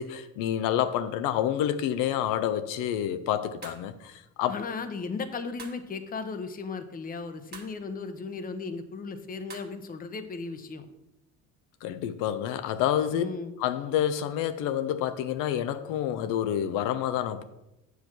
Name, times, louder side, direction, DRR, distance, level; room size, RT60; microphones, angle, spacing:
voice 1, 0.0-4.6 11.8-13.2 13.6-17.4, left 10 dB, 85° left, 0.7 m, -28 dB
sound 1, 3.6-3.9 5.6-5.9 7.5-7.8 9.5-9.8, right 5 dB, 30° right, 1.4 m, -45 dB
voice 2, 4.5-10.9 13.1-13.5, left 4 dB, 25° left, 0.8 m, -36 dB
8.1 x 4.7 x 6.0 m
cardioid pair, 130°, 31 cm